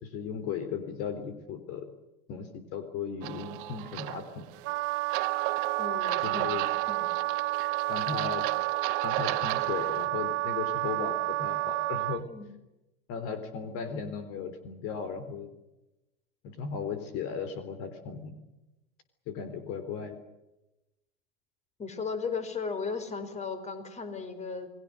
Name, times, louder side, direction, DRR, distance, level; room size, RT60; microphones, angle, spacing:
voice 1, 0.0-1.9 2.3-4.5 6.2-6.7 7.9-8.5 9.0-12.3 13.1-15.5 16.4-18.4 19.3-20.2, left 6 dB, 50° left, 10 dB, 3.7 m, -36 dB
sound 1, 3.2-10.1, right 18 dB, 60° right, 1.5 m, -36 dB
Wind instrument woodwind instrument, 4.6-12.2, right 18 dB, 45° right, 1.7 m, -30 dB
voice 2, 5.8-6.5 6.9-7.1 12.3-12.5 21.8-24.7, left 5 dB, 25° left, 10 dB, 4.8 m, -35 dB
29.0 x 21.5 x 6.6 m, 0.98 s
hypercardioid pair, 90°, 29 cm